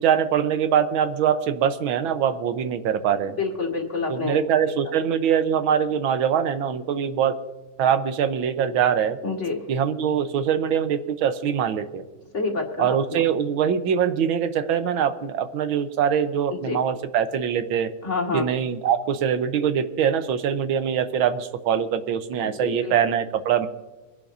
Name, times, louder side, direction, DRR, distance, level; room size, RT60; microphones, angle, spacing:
voice 1, 0.0-3.4 4.1-7.4 7.8-9.2 9.7-12.1 12.8-17.9 18.3-23.7, right 8 dB, 85° right, 10 dB, 1.6 m, -23 dB
voice 2, 3.4-4.7 9.2-9.6 12.3-13.2 16.6-16.8 18.0-18.4 22.4-22.9, left 4 dB, 35° left, 1 dB, 2.1 m, -28 dB
25.0 x 11.0 x 2.6 m, 1.2 s
omnidirectional pair, 2.2 m